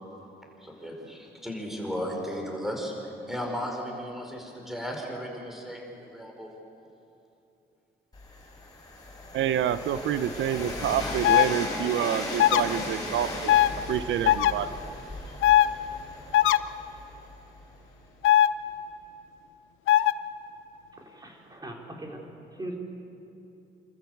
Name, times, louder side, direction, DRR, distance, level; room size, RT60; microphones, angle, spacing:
voice 1, 0.6-6.5, equal, ahead, 1 dB, 5.0 m, -35 dB
Train, 8.1-18.0, left 2 dB, 20° left, 7.1 m, -37 dB
voice 2, 9.3-13.5 13.9-14.7, right 10 dB, 75° right, 13 dB, 0.8 m, -28 dB
sound 1, 11.2-11.5 12.4-12.6 13.5-13.7 14.2-14.5 15.4-15.7 16.3-16.6 18.2-18.5 19.9-20.1, left 13 dB, 85° left, 0.6 m, -19 dB
voice 3, 20.9-22.8, right 1 dB, 20° right, 0 dB, 4.1 m, -40 dB
27.0 x 14.0 x 8.0 m, 2.8 s
cardioid pair, 90°, 20 cm